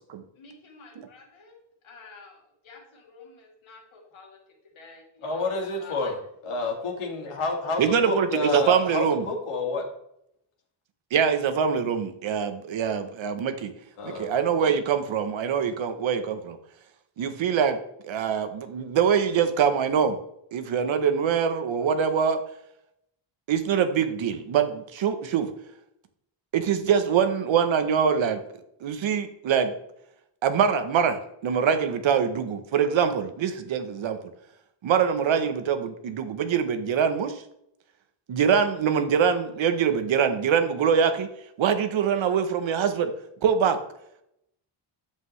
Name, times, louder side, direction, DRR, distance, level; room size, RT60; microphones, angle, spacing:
voice 1, 0.4-1.6 1.8-2.4 2.6-4.4 4.8-6.1 6.4-6.6, left 4 dB, 70° left, -1 dB, 2.8 m, -49 dB
voice 2, 5.2-6.2 6.4-9.8 14.0-14.3, left 3 dB, 90° left, 0 dB, 2.1 m, -29 dB
voice 3, 7.8-9.3 11.1-13.7 14.0-16.6 17.2-17.8 18.0-20.2 20.5-22.4 23.5-25.5 26.5-28.4 28.8-29.7 30.4-34.2 34.8-37.4 38.3-41.3 41.6-43.1 43.4-43.8, right 7 dB, 65° right, 9 dB, 1.0 m, -24 dB
8.6 x 7.7 x 3.2 m, 0.77 s
wide cardioid pair, 175°, 50 cm